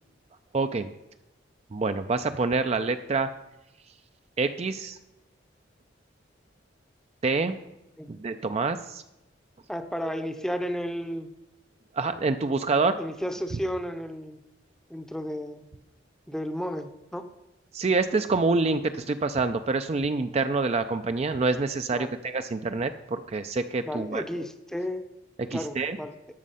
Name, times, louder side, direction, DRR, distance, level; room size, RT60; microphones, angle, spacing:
voice 1, 0.5-0.9 1.7-3.3 4.4-5.0 7.2-7.6 8.1-9.0 11.9-13.0 17.7-24.5 25.4-26.0, right 3 dB, 35° right, 9 dB, 0.4 m, -27 dB
voice 2, 9.7-11.3 12.8-14.4 14.9-15.6 16.3-17.3 21.9-22.1 23.9-25.0 25.5-26.2, equal, 5° left, 8 dB, 0.7 m, -33 dB
12.5 x 6.3 x 5.6 m, 0.93 s
head